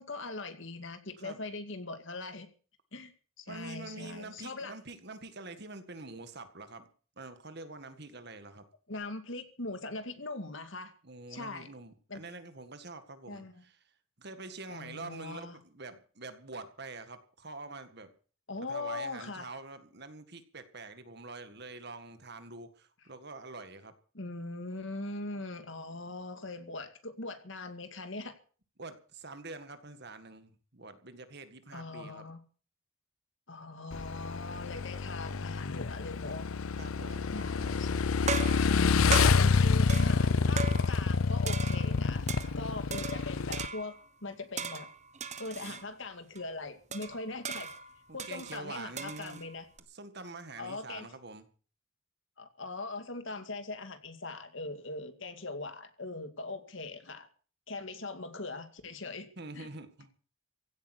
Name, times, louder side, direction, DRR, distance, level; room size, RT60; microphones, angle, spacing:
voice 1, 0.0-2.5 2.9-3.1 3.4-4.7 8.9-10.9 11.3-11.7 12.1-12.2 13.3-13.6 14.7-15.6 18.5-19.5 24.1-28.4 31.7-32.4 33.5-36.5 37.3-38.1 38.8-42.3 42.5-44.9 45.4-47.7 48.1-49.7 50.6-51.1 52.4-57.3 57.7-59.3 59.5-59.7, left 2 dB, 60° left, 9 dB, 2.2 m, -41 dB
voice 2, 3.5-6.9 7.2-8.7 11.0-13.7 14.2-18.1 18.7-23.9 28.8-32.3 36.8-37.3 42.6-43.1 48.1-49.4 49.9-51.5 59.4-60.1, right 3 dB, 50° right, 10 dB, 1.9 m, -46 dB
Motorcycle / Engine, 33.9-43.7, left 5 dB, 85° left, 0.7 m, -28 dB
sound 1, 37.4-37.7 38.3-41.2 41.5-42.6 42.9-44.1 44.6-45.9 46.4-46.5 46.9-49.8, right 5 dB, 35° right, 1.2 m, -38 dB
16.0 x 8.8 x 8.3 m, 0.41 s
head